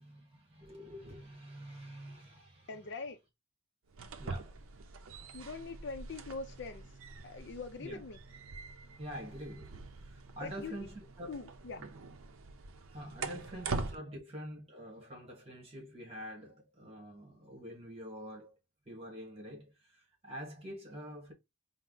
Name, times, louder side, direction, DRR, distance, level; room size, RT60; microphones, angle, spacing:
voice 1, 0.0-2.8 4.2-4.6 7.8-8.0 9.0-11.5 11.8-11.9 12.9-18.6 18.8-21.3, equal, 30° right, 1.4 m, -46 dB
voice 2, 2.7-3.2 5.3-6.9 7.2-8.2 10.4-10.8 11.3-11.8, left 4 dB, 55° left, 0.5 m, -43 dB
sound 1, 3.9-14.0, right 3 dB, 80° right, 0.6 m, -44 dB
4.5 x 2.1 x 3.7 m
head